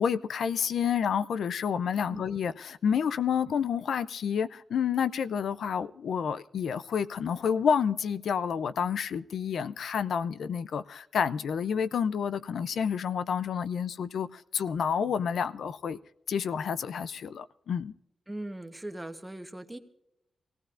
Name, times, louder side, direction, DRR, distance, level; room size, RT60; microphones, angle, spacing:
voice 1, 0.0-16.0 16.3-17.9, left 7 dB, 85° left, 0.4 m, -29 dB
voice 2, 2.1-2.4 18.3-19.8, right 1 dB, 10° right, 1.0 m, -40 dB
24.0 x 17.0 x 2.5 m
wide cardioid pair, 135°, 0 cm